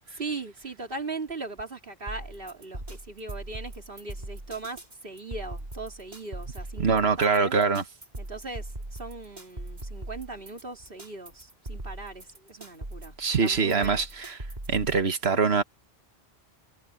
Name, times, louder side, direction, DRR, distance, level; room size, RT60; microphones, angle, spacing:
voice 1, 0.1-7.5 8.2-14.0, right 3 dB, 60° right, 3.2 m, -39 dB
sound 1, 2.1-15.0, right 1 dB, 45° right, 3.3 m, -40 dB
voice 2, 6.8-7.8 13.2-14.4 14.7-15.6, right 5 dB, 80° right, 1.7 m, -24 dB
omnidirectional pair, 1.0 m